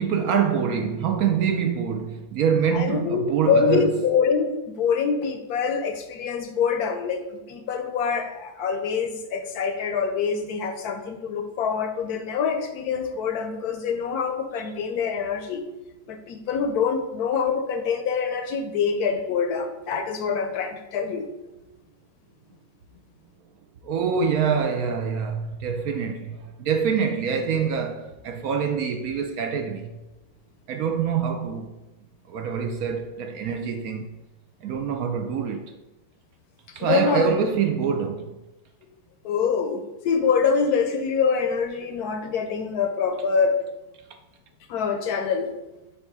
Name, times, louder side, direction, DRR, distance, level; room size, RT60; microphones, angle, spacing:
voice 1, 0.0-3.9 23.8-29.9 30.7-31.7 32.3-34.1 34.6-35.7 36.7-38.4, right 6 dB, 65° right, 1.0 m, -25 dB
voice 2, 2.7-15.6 16.1-21.3 36.8-37.3 39.2-43.6 44.7-45.5, left 6 dB, 70° left, 1.0 m, -25 dB
8.5 x 2.9 x 4.7 m
omnidirectional pair, 1.8 m